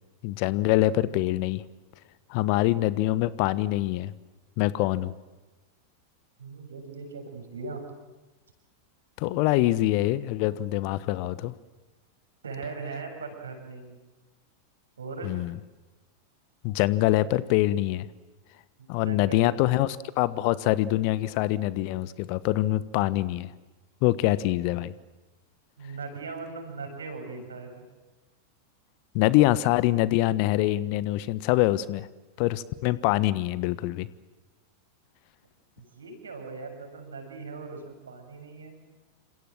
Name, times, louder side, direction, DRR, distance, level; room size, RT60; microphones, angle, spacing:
voice 1, 0.2-1.6 2.3-4.1 4.6-5.1 9.2-11.5 15.2-15.5 16.6-18.1 18.9-23.5 24.0-24.9 29.1-32.1 32.4-34.1, left 16 dB, 45° left, 18 dB, 1.1 m, -24 dB
voice 2, 6.4-7.8 10.5-10.6 12.4-14.0 15.0-15.4 18.8-19.6 25.8-27.9 35.8-38.8, right 4 dB, 70° right, 4 dB, 6.9 m, -39 dB
28.5 x 26.5 x 7.6 m, 1.2 s
figure-of-eight pair, 90°, 0 cm